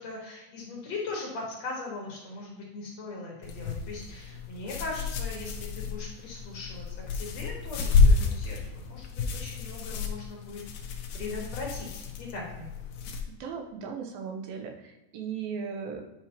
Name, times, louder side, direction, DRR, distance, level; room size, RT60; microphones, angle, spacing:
voice 1, 0.0-12.7, left 3 dB, 55° left, -2 dB, 2.2 m, -39 dB
sound 1, 3.4-13.2, left 4 dB, 75° left, 2.2 m, -29 dB
voice 2, 13.4-16.0, right 6 dB, 85° right, 3 dB, 2.6 m, -37 dB
9.9 x 6.0 x 2.9 m, 1.0 s
omnidirectional pair, 4.2 m